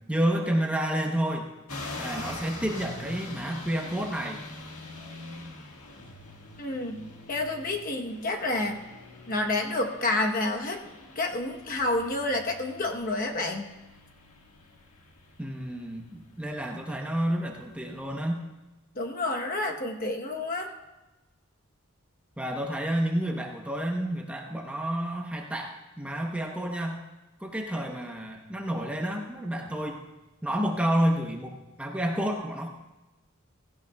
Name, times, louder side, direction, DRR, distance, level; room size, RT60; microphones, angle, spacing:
voice 1, 0.1-1.5 2.0-4.4 15.4-18.4 22.4-27.0 27.4-30.0 30.4-32.7, right 1 dB, 5° right, 1 dB, 0.8 m, -30 dB
sound 1, 1.7-18.2, left 2 dB, 85° left, 1.7 m, -44 dB
voice 2, 6.6-8.8 9.3-10.9 11.2-13.7 19.0-20.7, left 2 dB, 40° left, 2 dB, 1.0 m, -29 dB
16.5 x 16.0 x 2.3 m, 1.1 s
head